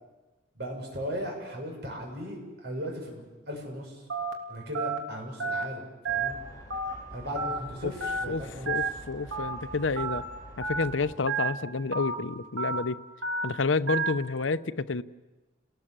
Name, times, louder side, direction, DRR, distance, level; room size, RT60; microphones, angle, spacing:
voice 1, 0.6-4.0 4.5-6.4 7.1-8.8, equal, 60° right, 1 dB, 6.9 m, -37 dB
Telephone, 4.1-4.3 4.7-5.0 5.4-5.6 6.0-6.3 6.7-6.9 7.3-7.6 8.0-8.2 8.7-8.9 9.3-9.5 10.0-10.2 10.6-10.8 11.3-11.5 11.9-12.1 12.6-12.8 13.2-13.4 13.9-14.1, right 4 dB, 85° right, 3.0 m, -30 dB
sound 1, 6.1-11.2, left 1 dB, 20° left, 4.8 m, -47 dB
voice 2, 8.3-10.2 10.6-13.0 13.4-15.0, left 4 dB, 85° left, 15 dB, 0.8 m, -29 dB
30.0 x 19.0 x 7.6 m, 1.2 s
head